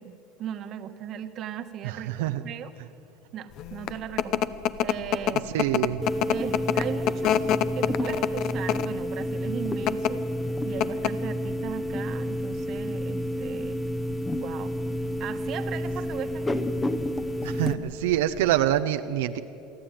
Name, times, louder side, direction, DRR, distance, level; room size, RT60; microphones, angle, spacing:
voice 1, 0.0-2.7 3.3-4.5 4.8-5.5 6.3-7.5 7.7-10.2 10.6-13.8 14.4-14.8 15.2-16.7, right 9 dB, 45° right, 8 dB, 1.3 m, -37 dB
voice 2, 1.8-2.4 5.5-6.0 17.4-19.4, right 12 dB, 90° right, 8 dB, 0.7 m, -26 dB
sound 1, 3.6-18.8, left 11 dB, 50° left, 0.7 m, -29 dB
sound 2, 6.0-17.7, equal, 15° left, 0.9 m, -30 dB
23.5 x 14.0 x 9.0 m, 3.0 s
supercardioid pair, 135°, 0 cm